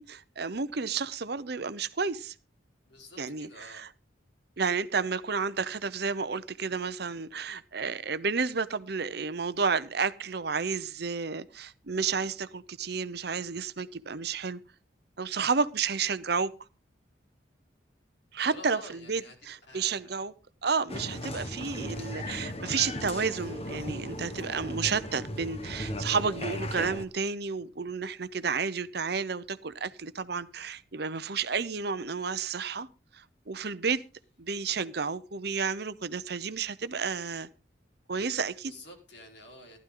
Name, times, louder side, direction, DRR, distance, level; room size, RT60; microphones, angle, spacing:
voice 1, 0.0-2.3 3.2-3.9 4.6-14.6 15.2-16.5 18.3-20.3 20.6-32.9 33.1-34.0 34.4-37.5 38.1-38.7, right 5 dB, 55° right, 0.8 m, -31 dB
voice 2, 2.8-3.8 18.4-19.4 19.7-20.2 38.6-39.8, left 1 dB, 65° left, 4.6 m, -49 dB
Applause, 20.9-27.0, left 1 dB, 35° left, 1.4 m, -36 dB
15.5 x 11.5 x 3.8 m
head